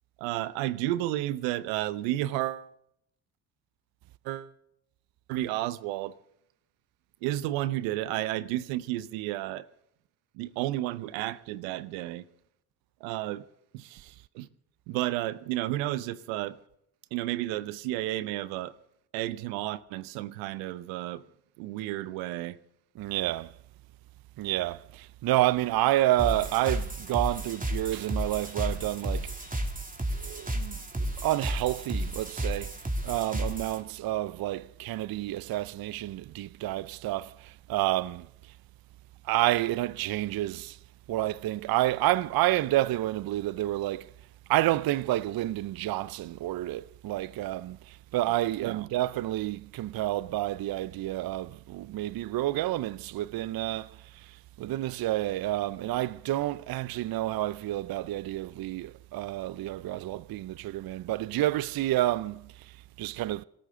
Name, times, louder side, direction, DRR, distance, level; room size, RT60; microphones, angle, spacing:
voice 1, 0.2-2.7 4.2-4.5 5.3-6.1 7.2-9.7 10.3-12.2 13.0-13.4 13.7-14.5 14.9-16.6 17.1-18.7 19.1-21.2 21.6-22.6 48.6-48.9, right 15 dB, 80° right, 0.9 m, -32 dB
voice 2, 23.0-23.5 24.4-29.3 30.2-32.8 33.0-38.3 39.3-40.8 41.1-44.1 44.5-53.9 54.6-62.4 63.0-63.4, right 15 dB, 50° right, 0.6 m, -29 dB
sound 1, 26.2-33.8, right 1 dB, 15° right, 2.7 m, -33 dB
25.5 x 13.0 x 3.8 m
hypercardioid pair, 45°, 46 cm